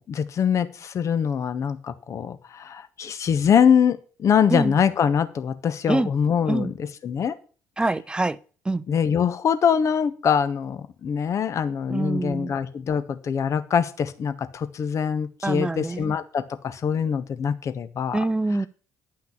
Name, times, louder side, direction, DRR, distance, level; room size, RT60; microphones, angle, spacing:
voice 1, 0.1-6.7 7.0-7.3 8.9-18.2, left 7 dB, 40° left, 1.0 m, -23 dB
voice 2, 7.8-8.4 8.6-8.8 11.9-12.5 15.4-16.1 18.1-18.7, right 2 dB, 10° right, 0.6 m, -25 dB
10.5 x 5.9 x 8.5 m
figure-of-eight pair, 50°, 8 cm